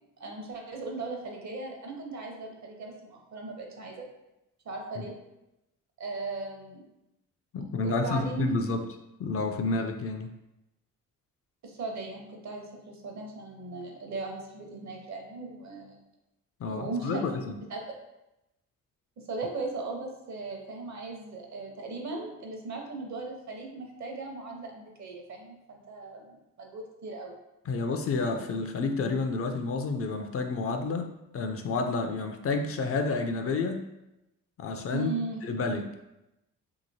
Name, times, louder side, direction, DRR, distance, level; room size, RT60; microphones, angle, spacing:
voice 1, 0.2-4.0 4.6-5.1 6.0-6.8 7.8-8.6 11.6-16.0 16.7-17.3 17.7-17.8 19.3-27.3 34.9-35.5, right 3 dB, 55° right, 1 dB, 0.8 m, -38 dB
voice 2, 7.5-8.8 9.2-10.3 16.6-17.6 27.7-33.8 34.6-35.1 35.4-35.9, left 3 dB, 45° left, 5 dB, 0.4 m, -30 dB
2.9 x 2.8 x 2.7 m, 0.92 s
supercardioid pair, 65°, 33 cm